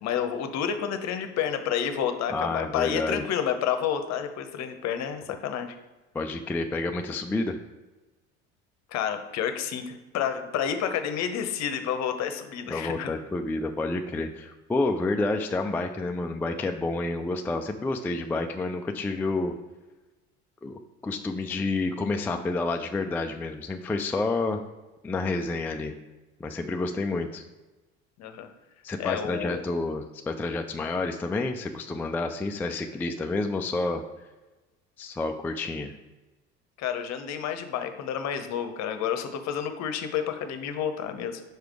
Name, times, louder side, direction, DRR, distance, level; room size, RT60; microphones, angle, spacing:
voice 1, 0.0-5.7 8.9-13.1 28.2-28.5 29.0-29.6 36.8-41.4, left 8 dB, 50° left, 8 dB, 0.8 m, -30 dB
voice 2, 2.3-3.2 6.1-7.6 12.7-19.5 20.6-24.6 25.0-25.9 26.4-27.4 28.8-34.0 35.0-35.9, left 3 dB, 5° left, 5 dB, 0.3 m, -29 dB
4.9 x 4.6 x 4.7 m, 1.2 s
hypercardioid pair, 70°, 35 cm